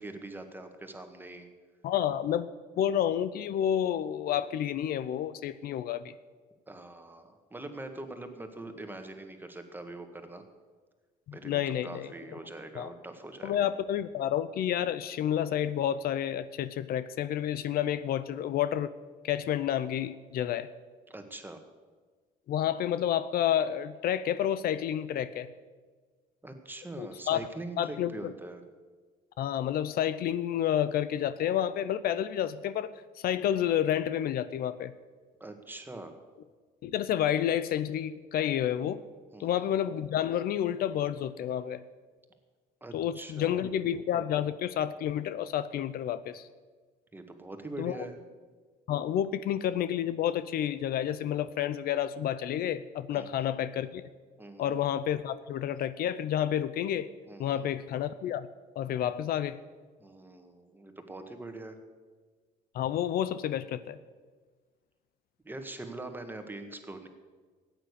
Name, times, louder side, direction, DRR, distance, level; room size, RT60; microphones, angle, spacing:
voice 1, 0.0-1.5 6.7-10.4 11.3-13.7 21.1-21.6 26.4-28.6 35.4-36.1 39.1-39.7 42.8-43.6 47.1-48.1 53.1-53.5 54.4-54.7 57.3-57.6 60.0-61.8 65.4-67.1, right 2 dB, 10° right, 6 dB, 1.7 m, -43 dB
voice 2, 1.8-2.5 2.8-6.1 11.3-12.1 12.8-12.9 13.4-18.9 19.2-20.7 22.5-25.5 27.0-27.4 27.8-28.3 29.4-34.9 36.8-39.0 39.4-41.8 42.9-46.5 47.8-48.0 48.9-54.1 54.6-57.1 57.4-58.5 58.8-59.6 62.7-64.0, left 10 dB, 65° left, 14 dB, 0.6 m, -30 dB
14.5 x 9.1 x 8.3 m, 1.5 s
cardioid pair, 110°, 17 cm